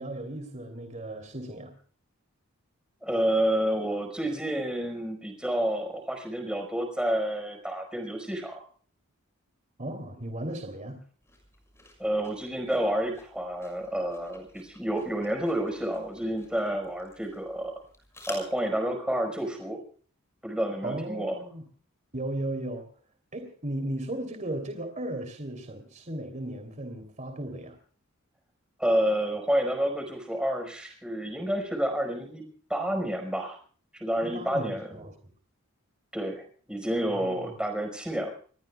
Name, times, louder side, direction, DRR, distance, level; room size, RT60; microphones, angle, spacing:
voice 1, 0.0-1.7 9.8-11.0 20.8-21.6 22.1-22.9 23.3-27.8 34.2-35.1 37.1-37.4, right 1 dB, 35° right, 6 dB, 3.1 m, -36 dB
voice 2, 3.0-8.6 12.0-17.7 18.3-19.8 20.4-21.3 28.8-32.4 32.7-33.6 33.9-34.9 36.1-36.4 36.7-38.3, right 1 dB, 5° right, 4 dB, 5.1 m, -29 dB
sound 1, 11.2-18.8, left 2 dB, 15° left, 6.3 m, -51 dB
28.0 x 20.5 x 2.3 m, 0.44 s
head